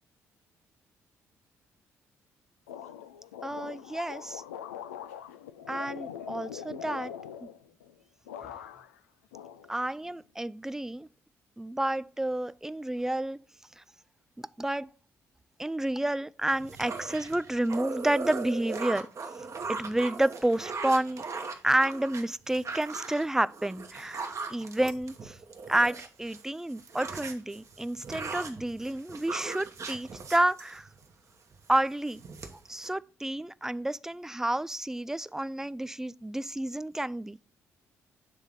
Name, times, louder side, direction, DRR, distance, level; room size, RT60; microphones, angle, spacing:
sound 1, 2.7-7.9 8.3-9.0 9.3-10.2, left 9 dB, 90° left, 0.4 m, -43 dB
voice 1, 3.4-4.4 5.7-7.1 9.7-11.1 11.6-13.4 13.8-13.9 14.4-14.9 15.6-19.1 19.7-21.2 21.6-25.4 25.7-30.9 31.7-32.2 32.7-37.4, right 1 dB, 5° right, 0.3 m, -30 dB
sound 2, 16.5-26.4 26.7-31.1 31.5-31.8 32.1-32.9, right 4 dB, 45° right, 1.1 m, -39 dB
7.4 x 3.5 x 5.3 m
hypercardioid pair, 45°, 8 cm